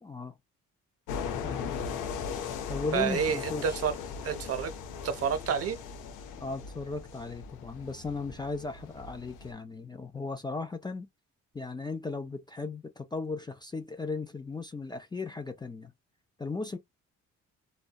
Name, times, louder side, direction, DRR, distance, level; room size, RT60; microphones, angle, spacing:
voice 1, 0.0-0.4 1.4-1.7 2.7-3.8 6.4-11.1 11.5-15.9 16.4-16.8, left 3 dB, 15° left, 0.3 m, -36 dB
sound 1, 1.1-9.5, left 6 dB, 90° left, 0.5 m, -38 dB
voice 2, 2.9-4.0 4.2-4.7 5.0-5.8, right 7 dB, 50° right, 0.6 m, -29 dB
2.6 x 2.1 x 2.2 m
cardioid pair, 90°, 30 cm